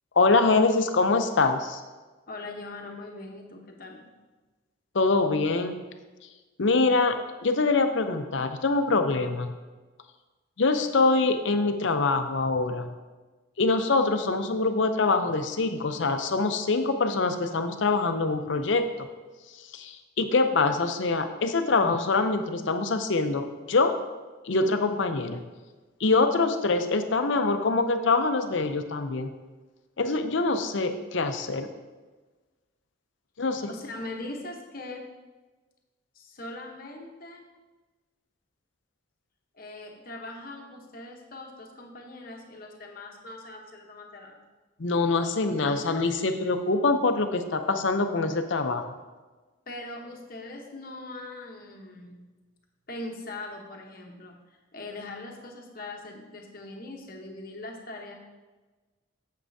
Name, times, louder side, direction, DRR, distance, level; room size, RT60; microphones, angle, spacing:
voice 1, 0.2-1.8 4.9-5.8 6.6-7.2 7.4-9.6 10.6-12.9 13.6-18.8 19.6-23.9 24.4-25.4 26.0-29.3 30.0-31.7 33.4-33.7 44.8-48.8, left 3 dB, 65° left, 8 dB, 0.6 m, -24 dB
voice 2, 2.3-4.1 33.7-35.1 36.1-37.5 39.6-44.4 49.7-52.3 52.9-54.4 54.7-58.2, left 2 dB, 45° left, 2 dB, 1.0 m, -41 dB
9.1 x 7.4 x 2.7 m, 1.3 s
head